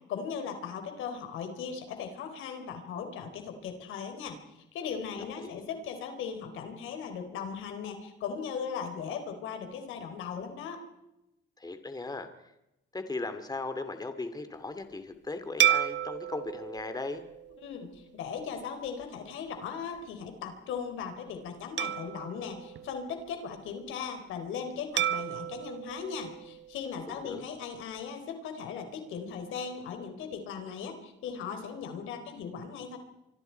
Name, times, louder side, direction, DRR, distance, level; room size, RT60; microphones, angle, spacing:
voice 1, 0.1-4.4 4.7-10.8 17.6-33.0, left 6 dB, 90° left, 7 dB, 3.9 m, -38 dB
voice 2, 5.3-5.6 11.6-12.3 12.9-17.2 27.2-27.5, left 3 dB, 20° left, 9 dB, 2.5 m, -37 dB
sound 1, 15.6-18.3 18.9-19.0 21.8-23.6 25.0-27.3, right 11 dB, 65° right, 1.0 m, -32 dB
26.0 x 25.0 x 4.6 m, 0.90 s
cardioid pair, 90°, 20 cm